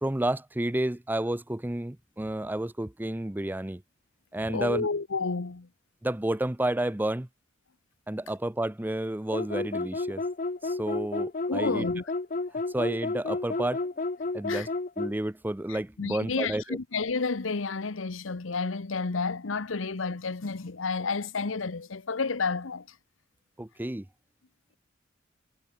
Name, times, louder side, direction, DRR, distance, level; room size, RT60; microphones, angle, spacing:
voice 1, 0.0-3.8 4.3-4.9 6.0-7.3 8.1-10.2 10.6-11.9 12.7-13.9 14.3-14.7 15.0-16.8 23.6-24.1, right 1 dB, 10° right, 0.6 m, -30 dB
voice 2, 4.5-5.7 11.5-12.0 14.5-14.7 15.7-22.9, left 4 dB, 90° left, 1.0 m, -31 dB
sound 1, 9.3-15.2, left 3 dB, 45° left, 0.8 m, -31 dB
head